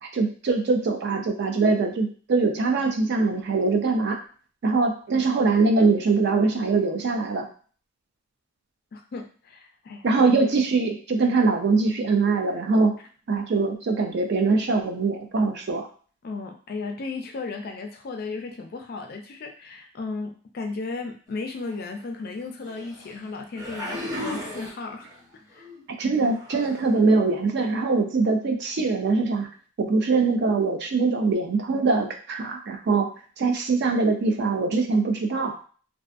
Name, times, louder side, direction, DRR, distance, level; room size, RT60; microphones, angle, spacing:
voice 1, 0.0-4.2 4.6-7.5 10.0-12.9 13.3-15.9 26.0-29.5 29.8-33.1 33.4-35.5, right 3 dB, 50° right, 4 dB, 0.3 m, -22 dB
voice 2, 8.9-10.1 16.2-25.1 25.5-25.7, left 3 dB, 45° left, 4 dB, 0.3 m, -35 dB
sound 1, 21.7-21.8 22.6-23.2 23.6-25.2 25.6-25.8 26.2-26.9 27.6-27.7, left 1 dB, 20° right, 0.9 m, -36 dB
2.4 x 2.3 x 2.5 m, 0.42 s
head